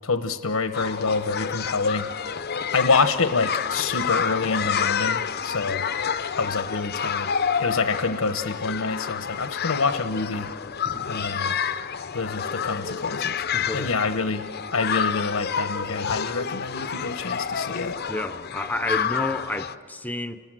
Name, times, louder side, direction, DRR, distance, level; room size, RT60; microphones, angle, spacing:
voice 1, 0.0-5.8 6.4-7.3 7.6-10.5 11.1-11.6 12.1-13.4 13.7-14.4 14.7-18.0, left 4 dB, 90° left, 1.0 m, -27 dB
sound 1, 0.7-19.8, left 7 dB, 50° left, 0.6 m, -29 dB
voice 2, 13.5-14.1 18.1-20.4, left 2 dB, 10° left, 0.7 m, -31 dB
29.5 x 20.0 x 7.6 m
head